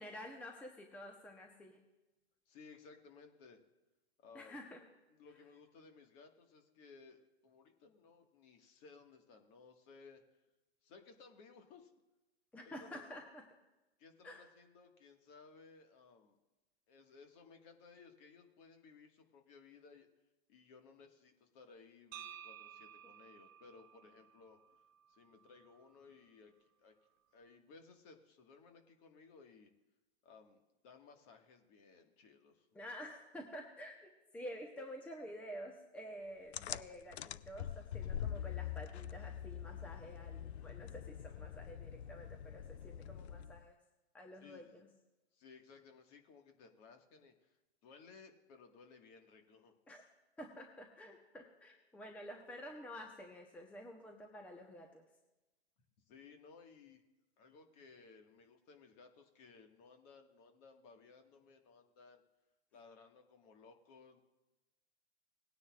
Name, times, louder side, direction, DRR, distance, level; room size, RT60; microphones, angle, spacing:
voice 1, 0.0-1.8 4.3-4.8 12.5-13.4 14.2-14.5 32.7-43.8 44.1-44.9 49.9-50.0 50.4-55.0, equal, 5° left, 2 dB, 0.9 m, -50 dB
voice 2, 2.5-3.6 4.2-4.6 5.1-10.2 10.8-11.9 12.7-13.1 14.0-16.4 16.9-20.1 20.5-24.6 25.1-26.9 27.3-29.7 30.2-32.8 44.4-44.8 45.3-47.6 47.8-49.7 56.1-57.0 57.4-62.2 62.7-64.2, left 4 dB, 35° left, 4 dB, 1.7 m, -60 dB
sound 1, 22.1-26.2, right 10 dB, 25° right, 0.6 m, -55 dB
sound 2, 36.5-43.7, left 10 dB, 75° left, 0.5 m, -44 dB
19.5 x 9.6 x 2.4 m, 1.0 s
hypercardioid pair, 125°, 33 cm